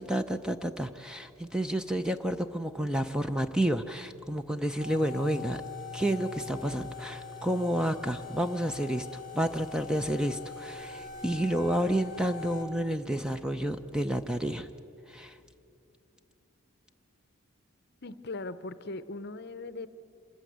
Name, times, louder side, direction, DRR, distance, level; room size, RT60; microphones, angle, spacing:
voice 1, 0.0-5.6 5.9-9.1 9.3-14.7 15.1-15.4, right 1 dB, 5° right, 8 dB, 0.5 m, -30 dB
sound 1, 4.8-12.6, left 5 dB, 20° right, 4.9 m, -42 dB
voice 2, 18.0-19.9, left 2 dB, 50° left, 14 dB, 0.7 m, -39 dB
26.5 x 14.5 x 9.3 m, 2.7 s
head